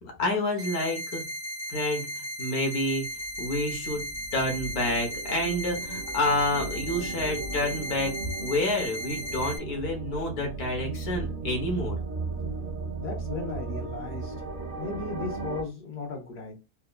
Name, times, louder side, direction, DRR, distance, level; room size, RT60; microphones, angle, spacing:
voice 1, 0.0-1.2 1.7-3.1 3.4-8.1 8.4-12.0, left 1 dB, 70° left, 1.5 m, -29 dB
sound 1, 0.6-9.6, equal, 70° right, 1.0 m, -36 dB
sound 2, 3.2-15.6, right 3 dB, 50° right, 0.6 m, -36 dB
voice 2, 13.0-16.5, left 4 dB, 85° left, 1.9 m, -36 dB
4.2 x 2.3 x 2.5 m
omnidirectional pair, 1.7 m